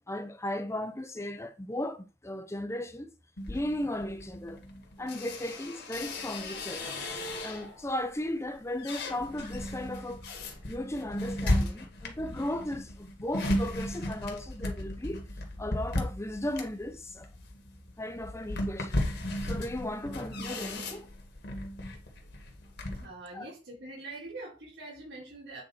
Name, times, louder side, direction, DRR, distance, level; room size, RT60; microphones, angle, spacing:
voice 1, 0.1-3.1 3.5-4.6 5.0-10.2 10.7-15.2 15.6-17.3 18.0-19.0 19.4-21.0 23.3-23.5, left 1 dB, 15° left, 0.8 m, -36 dB
sound 1, 3.4-7.9 8.3-23.1, left 1 dB, 60° left, 2.0 m, -35 dB
voice 2, 23.0-25.6, right 2 dB, 65° right, 3.9 m, -44 dB
8.8 x 4.5 x 4.4 m
head